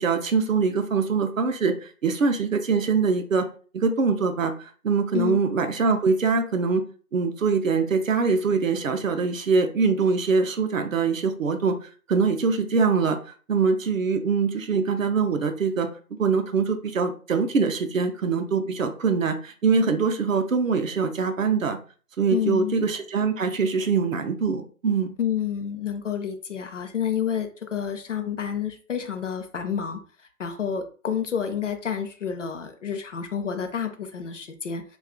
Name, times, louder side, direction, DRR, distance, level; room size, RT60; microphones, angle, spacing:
voice 1, 0.0-3.5 3.7-6.8 7.1-11.8 12.1-13.2 13.5-15.9 16.2-21.8 22.2-25.1, right 5 dB, 60° right, 6 dB, 0.6 m, -23 dB
voice 2, 22.3-22.8 25.2-30.0 30.4-34.8, left 8 dB, 55° left, 6 dB, 0.5 m, -29 dB
2.3 x 2.2 x 3.6 m, 0.40 s
figure-of-eight pair, 150°, 45 cm